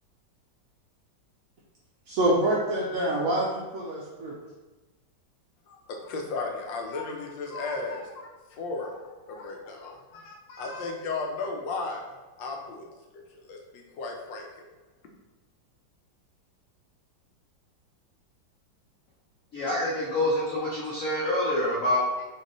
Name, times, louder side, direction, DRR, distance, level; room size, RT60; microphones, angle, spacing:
voice 1, 2.1-4.3 19.7-19.8, right 1 dB, 70° right, -5 dB, 0.8 m, -26 dB
voice 2, 5.7-14.6, left 3 dB, 80° left, 1 dB, 1.4 m, -35 dB
voice 3, 19.5-22.2, left 1 dB, 60° left, -6 dB, 1.0 m, -26 dB
4.5 x 3.1 x 3.0 m, 1.2 s
omnidirectional pair, 2.1 m